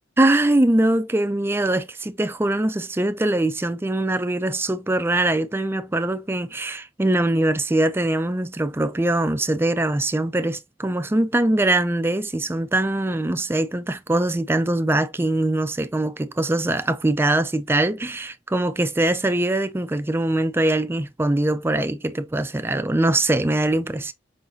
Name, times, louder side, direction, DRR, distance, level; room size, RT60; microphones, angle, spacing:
voice 1, 0.2-24.1, right 1 dB, 15° right, 0.4 m, -22 dB
5.2 x 3.9 x 2.6 m
head